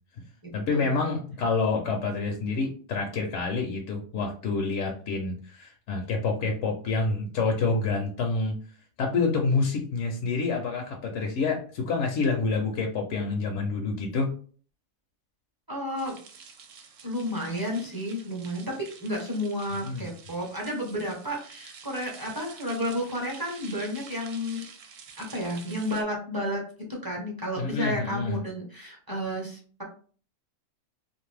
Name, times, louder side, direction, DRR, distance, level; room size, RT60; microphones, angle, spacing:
voice 1, 0.5-8.6 9.0-14.3 19.8-20.1 27.6-28.4, left 4 dB, 70° left, 1 dB, 0.8 m, -28 dB
voice 2, 15.7-16.1 17.0-18.6 19.0-24.6 25.2-26.6 26.9-29.8, equal, 20° right, -2 dB, 0.6 m, -31 dB
sound 1, 16.0-26.0, right 6 dB, 70° right, 0.9 m, -49 dB
2.6 x 2.5 x 3.2 m, 0.43 s
omnidirectional pair, 1.4 m